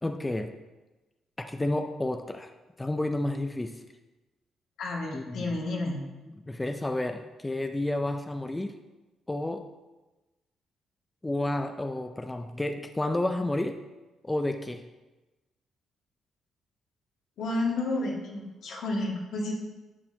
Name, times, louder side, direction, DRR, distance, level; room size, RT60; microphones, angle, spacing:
voice 1, 0.0-0.5 1.4-2.5 2.8-3.8 5.1-5.6 6.3-8.8 9.3-9.7 11.2-13.8 14.2-14.9, left 1 dB, 15° left, 7 dB, 0.5 m, -31 dB
voice 2, 4.8-6.0 17.4-19.5, left 2 dB, 75° left, -3 dB, 2.3 m, -31 dB
11.0 x 7.8 x 2.9 m, 1.1 s
cardioid pair, 90°, 0 cm